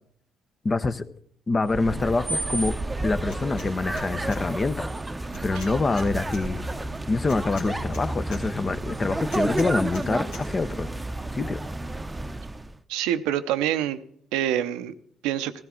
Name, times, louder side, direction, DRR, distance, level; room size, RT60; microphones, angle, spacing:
voice 1, 0.6-1.0 1.5-2.7 3.0-4.9 5.4-6.7 7.1-10.9 11.3-11.6, left 3 dB, 35° left, 0.9 m, -26 dB
sound 1, 1.6-12.8, right 2 dB, 15° right, 0.8 m, -31 dB
sound 2, 3.3-3.7 4.0-4.4 5.3-6.4 7.3-8.4 9.3-10.1 10.3-10.5, left 2 dB, 75° left, 3.4 m, -42 dB
voice 2, 12.9-14.0 14.3-14.9 15.2-15.5, right 11 dB, 80° right, 0.7 m, -26 dB
15.5 x 13.5 x 3.8 m
hypercardioid pair, 55°, 0 cm